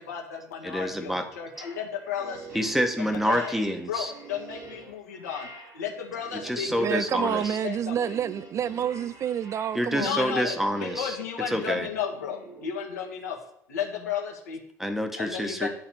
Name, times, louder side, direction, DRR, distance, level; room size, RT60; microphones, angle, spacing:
voice 1, 0.0-2.7 3.0-3.5 3.9-5.5 5.7-7.4 7.6-8.2 9.9-13.4 13.7-14.6 15.2-15.7, left 8 dB, 75° left, 1.7 m, -34 dB
voice 2, 0.6-1.2 2.5-4.1 6.4-7.6 9.7-11.2 11.5-11.9 14.8-15.7, equal, 5° right, 1.4 m, -27 dB
sound 1, 1.5-12.6, right 3 dB, 55° right, 3.6 m, -46 dB
voice 3, 6.8-10.4, right 9 dB, 35° right, 0.3 m, -29 dB
11.0 x 4.0 x 7.5 m
figure-of-eight pair, 65°, 9 cm